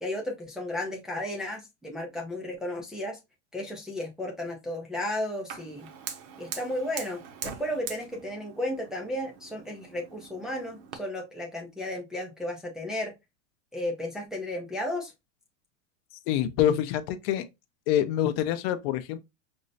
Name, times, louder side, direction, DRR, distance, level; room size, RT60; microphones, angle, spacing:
voice 1, 0.0-3.2 3.5-5.9 6.4-13.1 13.7-15.1, left 1 dB, ahead, 0.3 m, -34 dB
Fire, 5.5-11.0, right 7 dB, 40° right, 0.7 m, -42 dB
voice 2, 16.3-17.4 17.9-19.2, left 11 dB, 50° left, 0.6 m, -26 dB
5.2 x 2.0 x 2.5 m
hypercardioid pair, 125°, 40 cm